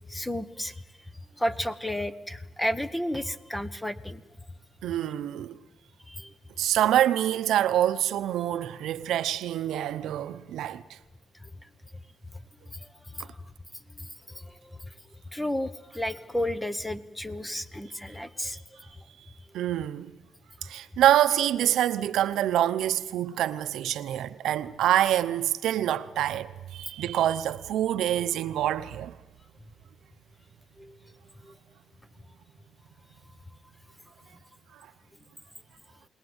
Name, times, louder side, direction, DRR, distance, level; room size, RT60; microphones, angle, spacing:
voice 1, 0.1-0.8 1.4-4.2 6.1-6.3 11.4-11.5 12.7-12.9 13.1-13.3 14.3-14.8 15.3-18.6 30.8-31.1 31.4-31.6, left 1 dB, 10° left, 1.1 m, -32 dB
voice 2, 4.8-5.6 6.6-11.0 19.5-20.1 20.6-29.1 34.7-34.9, right 12 dB, 80° right, 0.8 m, -26 dB
28.5 x 19.5 x 8.1 m
cardioid pair, 90°, 0 cm